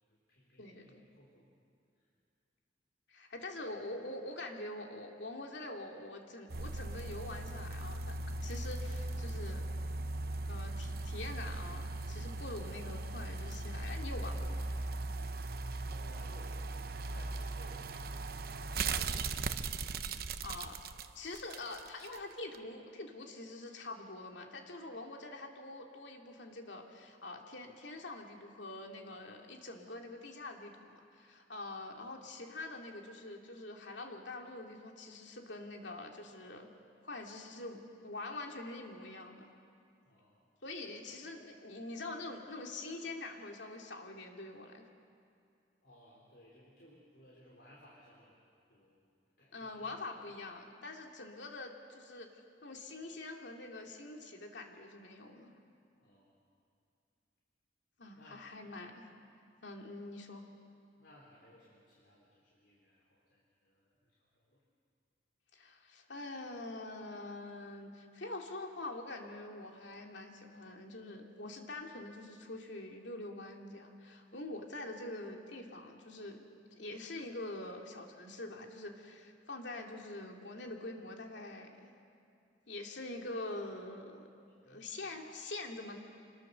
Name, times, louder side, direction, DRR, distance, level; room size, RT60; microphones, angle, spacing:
voice 1, 0.1-1.5 2.0-2.1 3.4-3.5 15.8-19.4 19.8-19.9 40.0-40.4 41.0-41.2 45.8-49.1 49.4-50.0 56.0-56.4 58.1-58.4 61.0-64.6 84.5-84.8, left 1 dB, 75° left, -4 dB, 3.7 m, -61 dB
voice 2, 0.6-1.0 3.1-9.7 10.5-14.7 20.4-20.8 21.1-36.7 37.0-39.5 40.6-44.8 49.5-52.3 52.6-55.5 58.0-59.1 59.6-60.4 65.5-76.4 76.7-81.9 82.7-84.3 84.7-86.0, left 2 dB, 90° left, 2 dB, 2.4 m, -45 dB
sound 1, 6.5-22.2 22.5-22.6, right 3 dB, 55° right, 0.8 m, -38 dB
26.0 x 20.5 x 6.9 m, 2.5 s
head